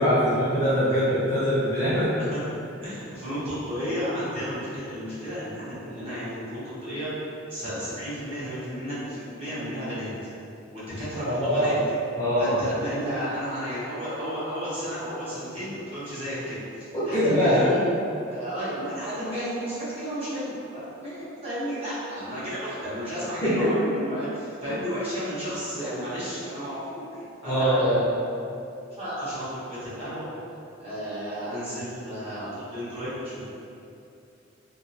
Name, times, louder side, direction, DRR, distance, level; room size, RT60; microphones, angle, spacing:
voice 1, 0.0-2.1 11.2-11.8 12.2-12.6 16.9-17.7 23.4-23.7 27.4-28.0, equal, 15° left, -12 dB, 0.7 m, -22 dB
voice 2, 2.8-7.1 7.5-10.1 10.7-11.7 12.4-17.9 18.3-28.0 28.9-30.3 30.8-33.4, equal, 30° right, -13 dB, 1.1 m, -33 dB
2.6 x 2.5 x 2.7 m, 2.7 s
head